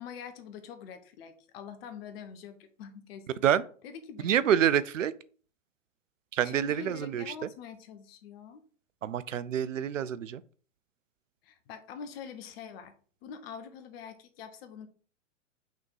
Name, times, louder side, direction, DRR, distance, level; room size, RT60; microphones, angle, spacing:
voice 1, 0.0-3.3 3.8-4.5 6.4-8.6 11.4-12.9 13.2-14.9, left 7 dB, 50° left, 1.2 m, -44 dB
voice 2, 4.2-5.1 6.3-7.5 9.0-10.4, right 9 dB, 80° right, 0.6 m, -27 dB
5.7 x 3.6 x 4.7 m
hypercardioid pair, 105°, 38 cm